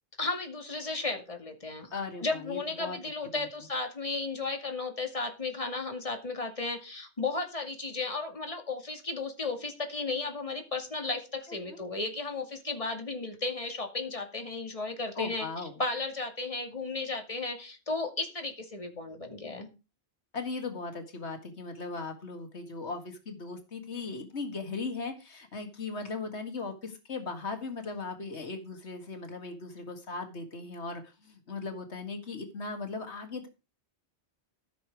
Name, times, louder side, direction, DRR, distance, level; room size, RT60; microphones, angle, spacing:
voice 1, 0.2-1.9 2.2-15.5 15.8-19.7, left 3 dB, 30° left, 4 dB, 2.4 m, -34 dB
voice 2, 1.9-3.0 3.3-3.5 11.7-11.8 15.2-15.8 20.3-33.5, left 4 dB, 90° left, 6 dB, 2.1 m, -38 dB
14.5 x 6.8 x 4.8 m, 0.29 s
omnidirectional pair, 1.1 m